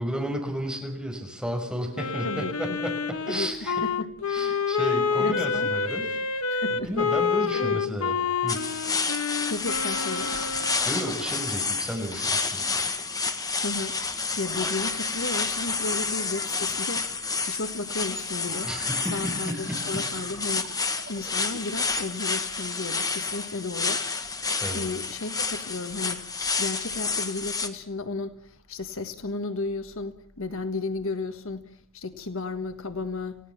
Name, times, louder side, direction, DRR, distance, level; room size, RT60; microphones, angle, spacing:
voice 1, 0.0-3.8 4.3-6.1 6.7-8.1 8.4-8.6 10.8-12.7 18.6-20.1 24.6-24.8, equal, 5° right, 6.1 m, -32 dB
Wind instrument woodwind instrument, 1.9-10.8, left 5 dB, 85° left, 1.6 m, -28 dB
voice 2, 2.2-2.8 3.3-3.5 3.8-4.1 5.2-5.8 6.5-6.9 7.5-7.8 9.5-10.4 13.6-14.0 14.4-17.1 17.4-18.7 19.1-20.7 21.1-24.1 24.7-33.4, left 3 dB, 65° left, 1.5 m, -33 dB
sound 1, 8.5-27.7, left 4 dB, 15° left, 1.7 m, -29 dB
sound 2, 18.7-22.2, right 4 dB, 65° right, 3.4 m, -47 dB
29.0 x 17.5 x 7.3 m
head